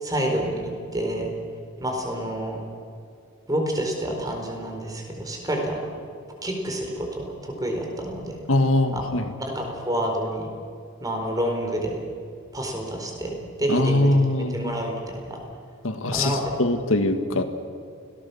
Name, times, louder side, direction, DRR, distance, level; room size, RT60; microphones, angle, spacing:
voice 1, 0.0-0.6 0.9-1.3 1.8-2.6 3.5-5.9 6.4-8.4 8.9-9.0 9.4-10.5 11.0-12.0 12.5-15.4 16.1-16.6, right 1 dB, 20° right, 2 dB, 4.5 m, -28 dB
voice 2, 8.5-9.2 13.7-14.7 15.8-17.4, left 2 dB, 80° left, 7 dB, 1.7 m, -22 dB
29.0 x 18.5 x 7.1 m, 2.3 s
head